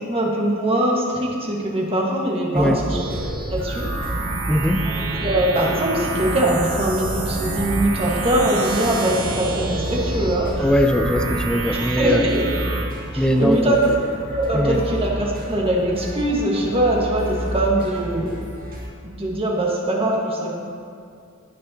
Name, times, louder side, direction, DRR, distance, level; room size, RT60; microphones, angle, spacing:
voice 1, 0.0-3.0 3.5-3.9 5.1-10.7 11.7-12.5 13.1-13.9 14.3-18.4 19.0-20.6, right 1 dB, 25° right, -2 dB, 1.6 m, -22 dB
sound 1, 2.5-18.9, right 1 dB, 45° right, 1.7 m, -32 dB
sound 2, 2.9-12.8, right 2 dB, 85° right, 1.4 m, -28 dB
voice 2, 4.5-4.8 10.6-12.3 13.1-13.8 14.5-14.8, equal, 5° left, 5 dB, 0.5 m, -20 dB
18.0 x 6.5 x 2.9 m, 2.3 s
head